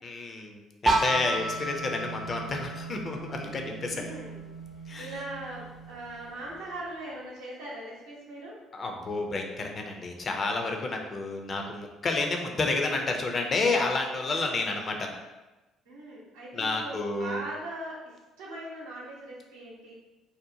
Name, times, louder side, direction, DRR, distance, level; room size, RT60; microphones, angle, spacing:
voice 1, 0.0-4.0 4.9-5.1 8.7-15.1 16.5-17.4, left 3 dB, 40° left, 3 dB, 0.4 m, -30 dB
sound 1, 0.9-6.7, right 2 dB, 25° right, 0.4 m, -33 dB
voice 2, 3.9-4.5 5.0-8.6 15.9-18.1 18.4-19.9, right 1 dB, 80° right, -5 dB, 0.7 m, -40 dB
2.7 x 2.1 x 2.6 m, 1.1 s
hypercardioid pair, 55°, 0 cm